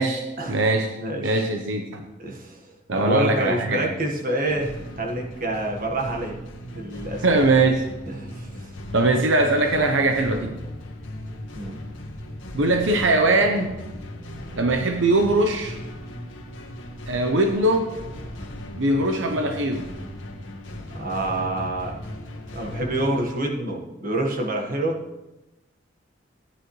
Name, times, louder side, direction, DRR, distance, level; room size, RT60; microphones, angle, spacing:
voice 1, 0.0-2.1 2.9-3.9 7.2-7.9 8.9-10.5 12.5-13.7 14.6-15.8 17.1-17.9 18.8-19.9, right 2 dB, 75° right, 4 dB, 0.8 m, -21 dB
voice 2, 1.0-1.4 2.2-2.6 2.9-4.7 5.0-6.4 6.7-7.4 8.1-8.7 11.5-11.7 20.9-22.0 22.5-25.0, right 1 dB, 45° right, 1 dB, 1.5 m, -27 dB
sound 1, 4.5-23.2, left 1 dB, 80° left, 1.6 m, -37 dB
14.0 x 9.7 x 3.2 m, 1.0 s
head